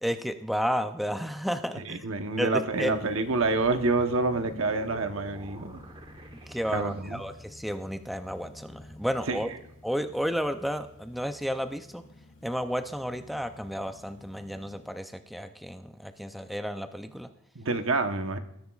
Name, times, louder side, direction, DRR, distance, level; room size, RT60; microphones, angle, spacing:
voice 1, 0.0-2.0 2.4-2.9 6.3-9.5 9.8-12.0 12.4-17.3, equal, ahead, 8 dB, 0.4 m, -32 dB
voice 2, 1.8-5.8 6.7-7.2 9.3-9.4 17.5-18.4, right 3 dB, 75° right, 7 dB, 1.0 m, -27 dB
sound 1, 2.7-15.0, left 1 dB, 65° left, 2.1 m, -52 dB
sound 2, 3.4-7.4, right 1 dB, 25° right, 1.0 m, -49 dB
20.0 x 10.0 x 2.4 m, 0.81 s
head